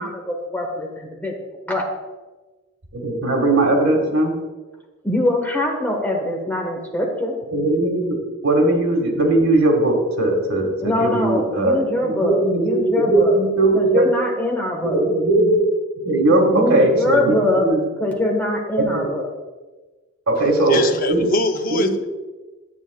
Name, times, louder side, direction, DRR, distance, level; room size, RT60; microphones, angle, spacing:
voice 1, 0.0-1.3 1.7-1.9 5.0-7.3 10.8-13.4 13.7-15.0 16.3-17.7 18.0-19.3, left 1 dB, 10° left, 0 dB, 1.2 m, -23 dB
voice 2, 2.9-4.3 7.5-8.2 8.4-14.0 14.8-15.6 16.0-17.8 18.9-19.1 20.3-20.8 21.1-21.2 21.7-21.9, right 2 dB, 70° right, 1 dB, 1.7 m, -19 dB
voice 3, 20.4-22.1, left 2 dB, 40° left, 7 dB, 0.5 m, -24 dB
11.0 x 8.3 x 2.3 m, 1.2 s
head